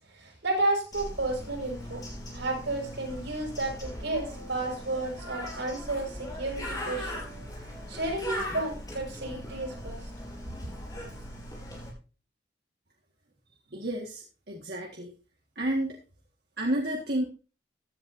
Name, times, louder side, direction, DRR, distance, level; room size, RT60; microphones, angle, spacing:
voice 1, 0.1-2.0 2.3-7.2 7.9-10.0 10.4-10.6, right 2 dB, 90° right, 1 dB, 6.6 m, -32 dB
Bird, 0.9-11.9, equal, 20° left, 4.9 m, -39 dB
voice 2, 13.7-15.1 15.6-16.0 16.6-17.2, right 1 dB, 65° right, -1 dB, 1.8 m, -30 dB
15.5 x 10.5 x 2.7 m, 0.36 s
head